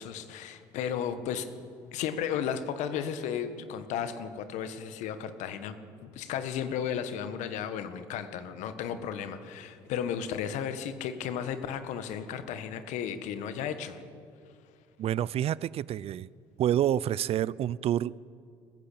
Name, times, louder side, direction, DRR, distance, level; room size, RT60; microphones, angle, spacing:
voice 1, 0.0-1.5 1.9-14.0, left 8 dB, 70° left, 10 dB, 1.6 m, -34 dB
voice 2, 15.0-16.3 16.6-18.2, right 11 dB, 50° right, 22 dB, 0.5 m, -28 dB
20.5 x 15.5 x 8.6 m, 2.3 s
hypercardioid pair, 65°, 13 cm